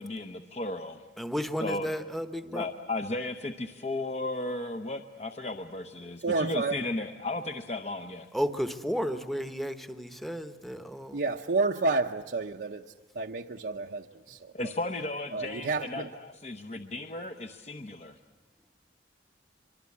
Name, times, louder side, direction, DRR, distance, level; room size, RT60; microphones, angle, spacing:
voice 1, 0.0-1.0 1.6-1.9 2.5-8.3 14.5-18.2, left 2 dB, 35° left, 6 dB, 0.9 m, -35 dB
voice 2, 1.2-2.7 8.3-11.2, equal, ahead, 9 dB, 1.0 m, -33 dB
voice 3, 6.2-6.8 11.1-12.8 13.1-14.5 15.3-16.1, right 3 dB, 65° right, 1 dB, 0.8 m, -30 dB
24.5 x 24.0 x 8.5 m, 1.2 s
head